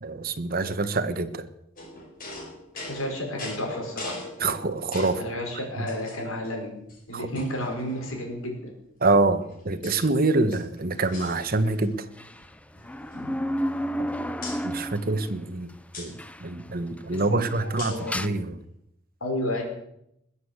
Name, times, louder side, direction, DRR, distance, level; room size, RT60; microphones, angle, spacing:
voice 1, 0.0-1.4 4.4-5.2 7.1-7.2 9.0-11.9 14.6-15.7 16.0-18.6, right 3 dB, 45° right, 10 dB, 1.3 m, -25 dB
sound 1, 1.8-5.3 5.9-6.5 6.9-7.0 7.3-8.4 9.2-10.1 10.4-12.0 12.2-12.4 12.7-14.0 14.4-14.6 15.9-16.1 17.8-18.1, left 2 dB, 45° left, 5.4 m, -41 dB
voice 2, 2.9-4.1 5.2-6.7 7.1-8.7 13.1-13.4 17.1-18.4 19.2-19.6, left 1 dB, 85° left, 2 dB, 5.1 m, -32 dB
sound 2, 12.2-15.4 15.7-15.8 16.2-16.7 17.0-18.3, equal, 5° left, 0.6 m, -31 dB
20.5 x 8.4 x 8.1 m, 0.79 s
head